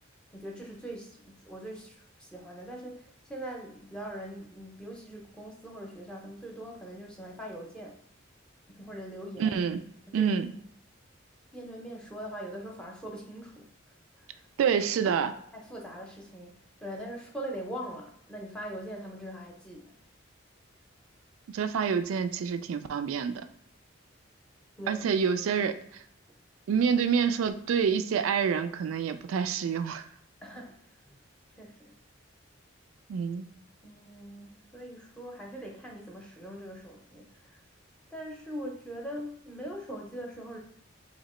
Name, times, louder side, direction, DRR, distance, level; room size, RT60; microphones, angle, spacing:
voice 1, 0.3-8.0 8.7-9.6 10.1-10.4 11.5-13.7 14.2-14.5 15.5-16.5 16.8-19.9 24.8-25.1 30.4-31.2 31.6-31.9 33.8-37.6 38.1-40.6, right 1 dB, 5° left, 0 dB, 0.6 m, -42 dB
voice 2, 9.4-9.8 10.1-10.5 14.6-15.3 21.5-23.4 24.9-25.8 26.7-30.1 33.1-33.5, right 6 dB, 90° right, 10 dB, 0.3 m, -27 dB
2.8 x 2.8 x 4.2 m, 0.71 s
head